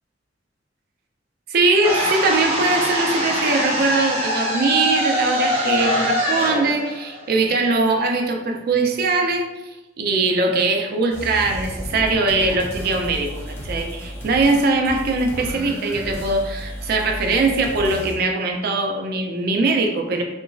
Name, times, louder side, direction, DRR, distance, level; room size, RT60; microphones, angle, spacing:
voice 1, 1.5-9.5 10.0-20.2, right 3 dB, 55° right, 3 dB, 0.4 m, -21 dB
sound 1, 1.8-7.9, equal, 30° right, 0.7 m, -23 dB
sound 2, 11.1-18.2, equal, 15° left, 0.6 m, -33 dB
2.9 x 2.4 x 2.3 m, 1.0 s
head